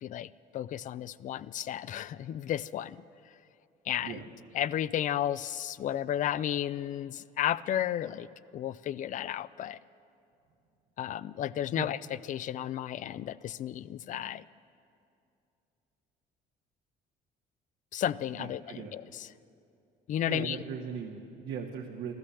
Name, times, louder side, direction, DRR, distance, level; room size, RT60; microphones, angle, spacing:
voice 1, 0.0-3.0 3.9-4.1 4.5-8.3 8.5-9.8 11.0-12.0 12.3-14.4 17.9-19.3 20.1-20.6, left 11 dB, 50° left, 18 dB, 0.4 m, -33 dB
voice 2, 18.3-18.9 20.2-22.1, right 6 dB, 80° right, 0 dB, 1.2 m, -38 dB
14.0 x 13.0 x 7.0 m, 2.6 s
cardioid pair, 110°, 17 cm